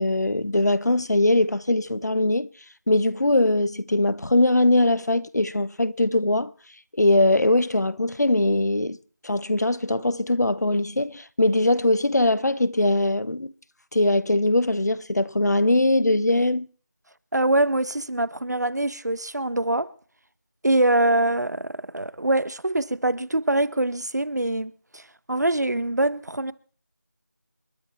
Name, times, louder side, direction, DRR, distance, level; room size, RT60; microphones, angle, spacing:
voice 1, 0.0-2.5 2.9-6.5 7.0-9.0 9.2-13.5 13.9-16.7, left 2 dB, 65° left, 1.0 m, -21 dB
voice 2, 17.3-19.9 20.6-25.0 25.3-26.5, right 1 dB, 70° right, 1.3 m, -24 dB
29.0 x 10.5 x 4.4 m
figure-of-eight pair, 180°, 10 cm